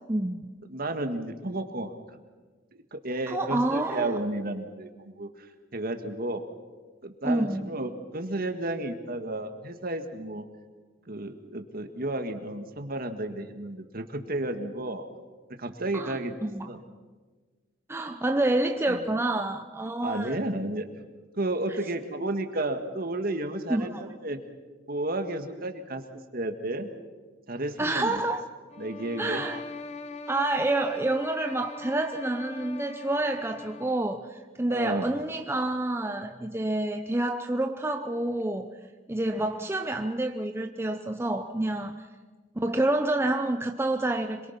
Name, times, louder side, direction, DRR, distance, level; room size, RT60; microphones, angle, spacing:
voice 1, 0.0-0.5 3.3-4.2 7.2-7.7 15.9-16.7 17.9-20.4 23.7-24.0 27.8-28.5 29.2-29.6 30.3-38.7 39.1-42.0 42.6-44.5, right 2 dB, 15° right, 5 dB, 0.7 m, -28 dB
voice 2, 0.7-1.9 2.7-5.5 5.7-6.4 7.0-10.5 11.1-15.0 15.6-16.3 16.7-16.8 18.9-19.1 20.0-20.9 21.4-23.9 24.2-24.4 24.9-26.0 26.3-26.9 27.5-28.3 28.8-29.4 34.7-35.1 39.2-39.5, right 2 dB, 50° right, 6 dB, 1.9 m, -32 dB
sound 1, 28.7-34.1, left 3 dB, 35° left, 0.8 m, -41 dB
26.5 x 22.5 x 5.9 m, 1.4 s
head